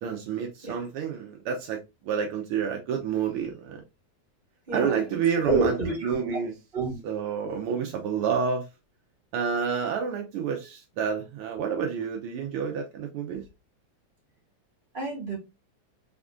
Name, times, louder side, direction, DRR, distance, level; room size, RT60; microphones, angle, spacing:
voice 1, 0.0-3.8 4.7-5.8 6.0-6.5 7.0-8.7 9.3-13.5, right 6 dB, 85° right, 1.2 m, -29 dB
voice 2, 4.7-6.3 6.7-7.0 14.9-15.4, right 3 dB, 20° right, 2.1 m, -28 dB
4.6 x 3.5 x 2.5 m
omnidirectional pair, 3.4 m